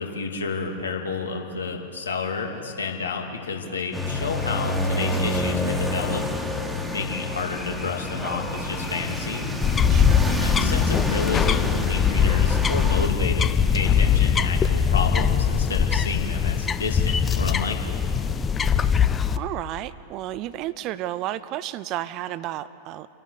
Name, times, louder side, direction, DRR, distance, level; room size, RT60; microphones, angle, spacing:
voice 1, 0.0-6.3 6.9-9.5 10.3-18.0, left 4 dB, 70° left, 2 dB, 2.8 m, -30 dB
sound 1, 3.9-13.1, left 2 dB, ahead, 1.8 m, -28 dB
sound 2, 9.6-19.4, left 7 dB, 20° left, 0.7 m, -21 dB
voice 2, 9.9-10.4 19.3-23.1, right 13 dB, 40° right, 17 dB, 0.6 m, -32 dB
29.0 x 11.0 x 8.3 m, 2.7 s
figure-of-eight pair, 90°, 0 cm